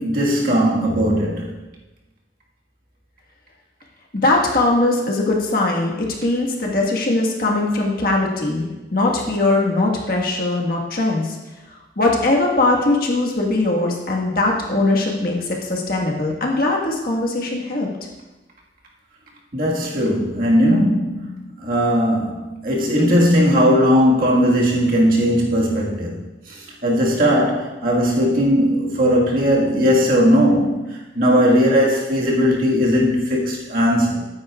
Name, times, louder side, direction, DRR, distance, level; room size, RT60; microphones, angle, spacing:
voice 1, 0.0-1.5 19.5-26.2 26.5-34.2, equal, 50° right, -3 dB, 1.7 m, -18 dB
voice 2, 4.1-5.9 6.2-11.4 12.0-17.9, left 2 dB, 50° left, -1 dB, 1.5 m, -20 dB
13.0 x 9.4 x 2.4 m, 1.1 s
head